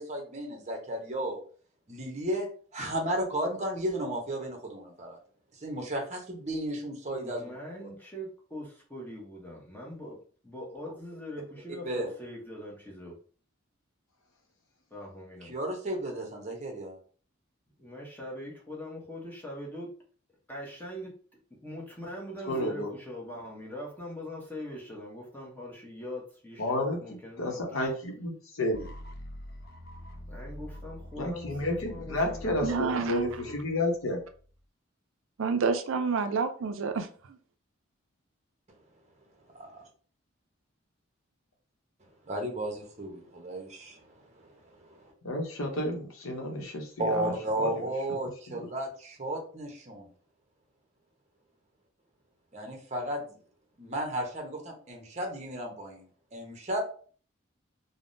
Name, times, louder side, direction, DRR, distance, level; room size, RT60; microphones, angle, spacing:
voice 1, 0.0-1.4 1.9-2.5 2.7-5.2 5.6-7.5 11.8-12.1 15.4-17.0 39.5-39.8 42.3-45.1 47.0-50.1 52.5-53.4 53.8-56.1 56.3-56.8, right 1 dB, 30° right, 1 dB, 0.7 m, -34 dB
voice 2, 7.1-10.2 10.4-13.2 14.9-15.5 17.8-19.9 20.5-21.1 21.6-27.7 30.3-33.6, left 1 dB, 10° left, -3 dB, 0.7 m, -42 dB
voice 3, 22.5-22.9 26.6-27.0 27.4-28.3 28.6-28.8 31.2-34.2 45.2-47.7 48.5-48.7, left 1 dB, 75° left, 2 dB, 0.7 m, -31 dB
sound 1, 28.7-34.6, left 1 dB, 45° left, 0.4 m, -45 dB
voice 4, 32.6-33.4 35.4-37.4, right 5 dB, 70° right, 8 dB, 0.4 m, -29 dB
3.4 x 2.0 x 2.5 m, 0.43 s
head